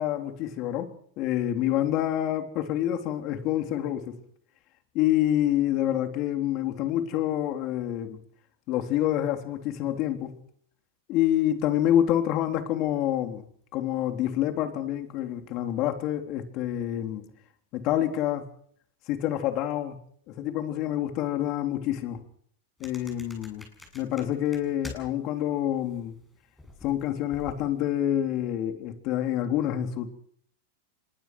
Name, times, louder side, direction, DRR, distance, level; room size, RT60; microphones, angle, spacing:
voice 1, 0.0-4.2 4.9-8.2 8.7-10.4 11.1-13.4 13.7-17.3 17.7-18.5 19.1-20.0 20.3-22.2 22.8-23.6 23.9-26.2 26.8-30.1, left 12 dB, 40° left, 5 dB, 3.7 m, -27 dB
sound 1, 22.8-25.3 25.6-27.8, left 2 dB, 5° left, 7.8 m, -47 dB
25.0 x 22.0 x 6.3 m, 0.64 s
supercardioid pair, 145°, 0 cm